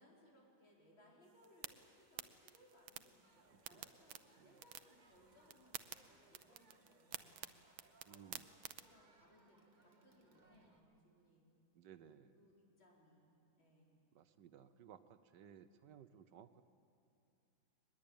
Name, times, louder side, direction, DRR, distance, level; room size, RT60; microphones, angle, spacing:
voice 1, 0.0-7.5 8.1-8.4 8.8-11.5 12.0-14.0, equal, 85° left, -3 dB, 5.3 m, -68 dB
sound 1, 1.2-8.8, right 11 dB, 90° right, 1.6 m, -53 dB
Crowd, 3.2-10.8, right 3 dB, 25° right, 1.3 m, -71 dB
voice 2, 3.5-3.9 4.4-4.6 8.0-8.5 11.7-12.4 14.1-16.6, right 8 dB, 70° right, 11 dB, 1.4 m, -60 dB
22.5 x 21.0 x 8.8 m, 2.6 s
omnidirectional pair, 2.1 m